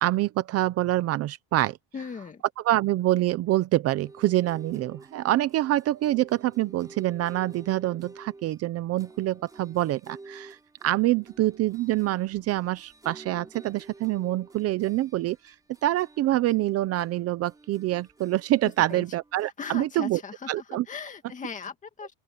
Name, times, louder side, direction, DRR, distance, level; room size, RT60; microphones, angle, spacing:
voice 1, 0.0-1.8 2.6-10.6 10.8-15.5 15.8-20.2 20.5-20.9, right 15 dB, 45° right, 0.7 m, -26 dB
voice 2, 1.9-2.4 18.9-19.0 19.6-20.5 20.9-22.1, left 6 dB, 20° left, 2.2 m, -38 dB
sound 1, 4.0-19.5, right 3 dB, 10° right, 4.7 m, -51 dB
open air
cardioid pair, 170°, 34 cm